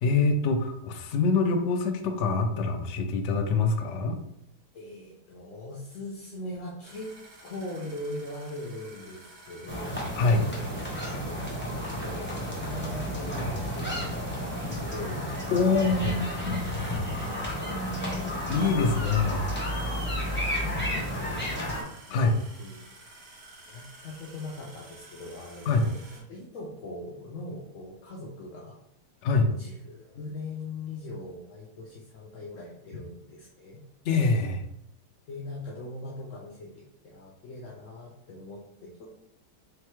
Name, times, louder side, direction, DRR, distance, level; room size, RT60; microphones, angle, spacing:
voice 1, 0.0-4.2 10.2-10.5 15.5-16.8 18.5-19.4 22.1-22.4 25.7-25.9 29.2-29.5 34.0-34.6, left 4 dB, 85° left, 5 dB, 0.6 m, -25 dB
voice 2, 4.7-7.1 7.4-10.0 10.5-10.7 11.2-11.6 12.0-15.3 16.0-17.0 20.4-22.3 22.6-22.9 23.7-28.8 29.4-33.8 35.3-39.1, left 2 dB, 60° left, -3 dB, 0.9 m, -41 dB
sound 1, 6.8-26.2, right 2 dB, 65° right, 1.5 m, -51 dB
sound 2, 9.7-21.8, equal, 10° left, 0.5 m, -32 dB
3.9 x 3.4 x 3.0 m, 0.76 s
omnidirectional pair, 1.8 m